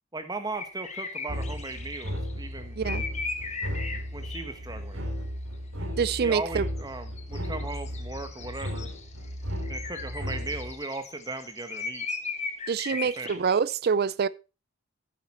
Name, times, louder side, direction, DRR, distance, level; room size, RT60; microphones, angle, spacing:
voice 1, 0.1-2.8 4.1-5.0 6.2-8.9 9.7-12.1 12.9-13.4, right 3 dB, 20° right, 1.2 m, -37 dB
sound 1, 0.5-2.3 2.8-4.6 6.7-13.6, left 4 dB, 30° left, 1.2 m, -37 dB
sound 2, 1.3-10.7, equal, 70° right, 3.4 m, -35 dB
voice 2, 6.0-6.7 12.7-14.3, right 6 dB, 45° right, 0.4 m, -26 dB
9.4 x 8.1 x 4.3 m
head